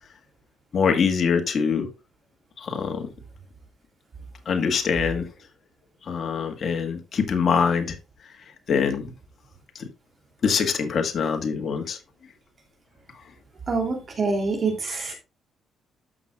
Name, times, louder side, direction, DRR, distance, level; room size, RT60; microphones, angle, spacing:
voice 1, 0.7-1.9 2.6-3.1 4.4-5.3 6.0-8.0 8.7-9.1 9.7-9.9 10.4-12.0, left 6 dB, 45° left, 1.8 m, -24 dB
voice 2, 13.7-15.2, right 4 dB, 35° right, 2.9 m, -26 dB
12.5 x 6.1 x 2.4 m
cardioid pair, 115°, 0 cm